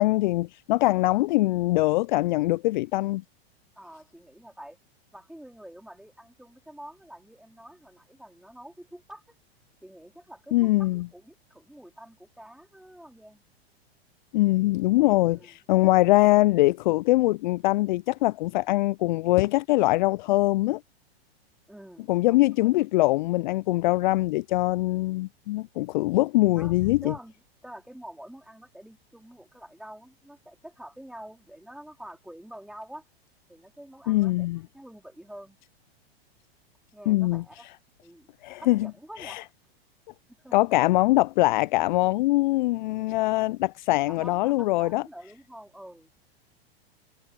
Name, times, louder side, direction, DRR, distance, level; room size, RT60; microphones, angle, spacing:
voice 1, 0.0-3.2 10.5-11.1 14.3-20.8 22.1-27.1 34.1-34.6 37.1-37.4 38.4-38.9 39.2-39.4 40.5-45.0, left 19 dB, 50° left, 0.4 m, -23 dB
voice 2, 3.8-4.8 5.1-9.4 9.8-13.4 15.2-15.6 15.9-16.3 21.7-22.7 26.6-26.8 27.0-27.3 27.6-33.0 33.5-34.5 34.7-35.6 36.9-37.7 38.0-38.3 38.6-39.4 40.3-40.6 44.1-46.2, right 1 dB, ahead, 4.0 m, -47 dB
figure-of-eight pair, 95°, 31 cm